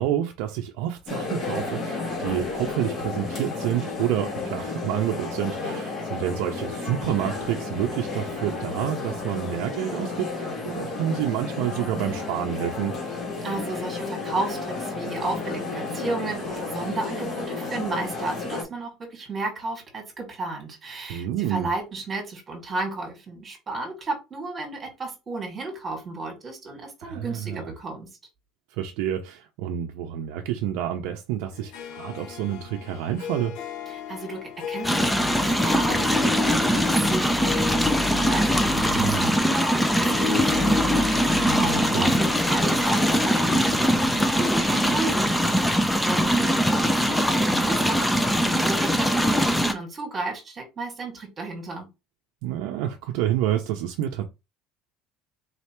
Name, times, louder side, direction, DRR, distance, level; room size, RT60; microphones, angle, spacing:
voice 1, 0.0-13.0 21.1-21.7 27.0-27.6 28.8-33.6 38.8-39.3 41.4-42.1 52.4-54.3, right 11 dB, 75° right, 0.6 m, -28 dB
sound 1, 1.1-18.6, left 3 dB, 30° left, 1.9 m, -32 dB
voice 2, 13.4-28.1 33.9-51.9, right 3 dB, 20° right, 2.0 m, -33 dB
Harp, 31.5-46.9, left 7 dB, 65° left, 0.8 m, -35 dB
sound 2, 34.8-49.7, equal, 5° left, 0.5 m, -22 dB
4.1 x 3.2 x 3.0 m
cardioid pair, 155°, 0 cm